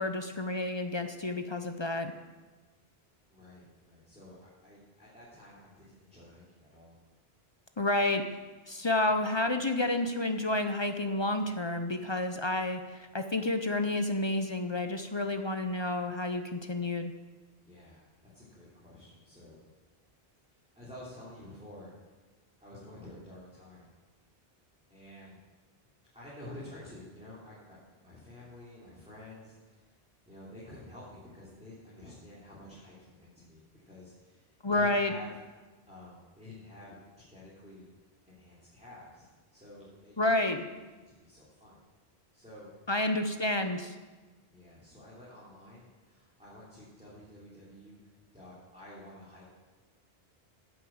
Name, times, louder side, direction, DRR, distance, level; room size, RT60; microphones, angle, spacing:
voice 1, 0.0-2.1 7.8-8.2 8.7-12.8 13.1-17.1 34.6-35.1 40.2-40.6 42.9-43.9, left 2 dB, 30° left, 7 dB, 0.7 m, -30 dB
voice 2, 3.3-4.4 4.6-7.0 17.6-18.0 18.3-19.6 20.8-21.9 22.6-23.9 24.9-25.4 26.1-27.8 28.0-29.8 30.3-34.4 34.7-35.4 35.9-37.0 37.3-37.8 38.3-40.3 40.7-41.8 42.3-42.7 44.5-48.0 48.3-49.5, left 1 dB, 5° right, -9 dB, 3.2 m, -50 dB
10.5 x 8.0 x 7.8 m, 1.3 s
omnidirectional pair, 1.1 m